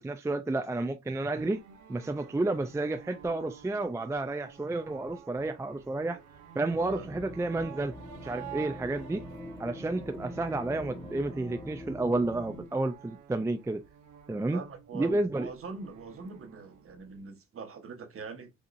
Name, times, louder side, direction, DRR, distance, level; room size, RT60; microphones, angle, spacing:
voice 1, 0.0-1.6 1.9-6.2 6.5-7.9 8.2-9.2 9.6-13.8 14.3-14.6 14.9-15.5, right 2 dB, 10° right, 0.4 m, -31 dB
sound 1, 1.3-17.2, right 9 dB, 75° right, 0.9 m, -50 dB
sound 2, 6.7-12.7, equal, 15° left, 0.9 m, -44 dB
voice 2, 14.5-18.5, right 5 dB, 45° right, 1.2 m, -43 dB
5.4 x 2.8 x 2.5 m
cardioid pair, 90°, 30 cm